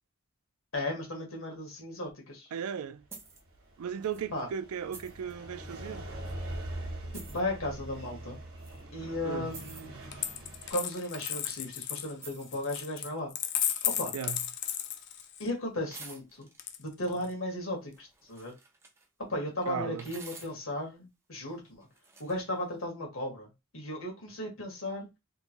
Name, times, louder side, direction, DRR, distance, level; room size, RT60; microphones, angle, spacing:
voice 1, 0.7-2.5 4.3-4.5 7.1-8.4 8.9-9.9 10.7-13.3 13.8-14.1 15.4-16.5 16.8-18.5 19.2-21.9 22.2-25.1, left 1 dB, 70° left, 1.6 m, -35 dB
voice 2, 2.5-3.0 3.8-6.1 9.2-9.5 14.1-14.4 19.7-20.1, right 7 dB, 90° right, 0.4 m, -36 dB
sound 1, 3.1-3.4 4.0-4.2 4.9-5.3 6.3-6.4 7.1-7.4 8.6-8.8 9.5-9.9 11.0-11.5 12.1-12.6 13.7-14.1 14.4-15.3 15.9-16.6 17.9-19.1 20.0-20.6 21.8-22.4, right 3 dB, 10° right, 0.4 m, -50 dB
sound 2, 3.1-10.7, right 1 dB, 70° right, 1.1 m, -42 dB
Coin (dropping), 10.1-15.5 16.6-17.3, left 11 dB, 50° left, 0.4 m, -34 dB
3.6 x 2.6 x 2.9 m
head